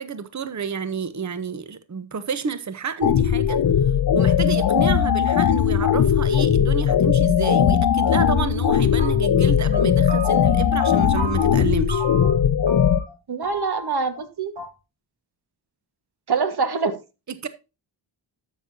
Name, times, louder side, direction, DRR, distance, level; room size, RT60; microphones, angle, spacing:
voice 1, 0.0-3.6 4.1-12.1 17.4-17.5, right 6 dB, 40° right, 1.0 m, -30 dB
sound 1, 3.0-13.0, left 8 dB, 50° left, 0.7 m, -19 dB
sound 2, 8.0-8.7 9.0-9.5 9.7-11.5 11.9-12.4 12.7-13.2 13.4-14.3 14.6-14.7, right 3 dB, 90° right, 5.0 m, -34 dB
voice 2, 13.3-14.5 16.3-16.9, right 5 dB, 55° right, 1.6 m, -24 dB
12.5 x 7.6 x 2.8 m
cardioid pair, 80°, 45 cm